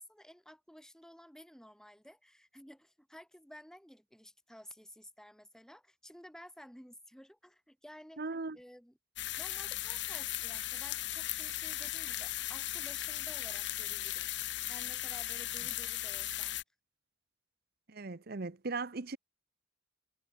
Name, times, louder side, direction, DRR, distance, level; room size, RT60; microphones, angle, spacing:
voice 1, 0.0-8.2 8.5-9.0 9.4-16.6, equal, 5° left, 4.1 m, -54 dB
voice 2, 8.2-8.6 17.9-19.2, right 3 dB, 55° right, 0.9 m, -38 dB
sound 1, 9.2-16.6, left 14 dB, 65° left, 1.4 m, -37 dB
head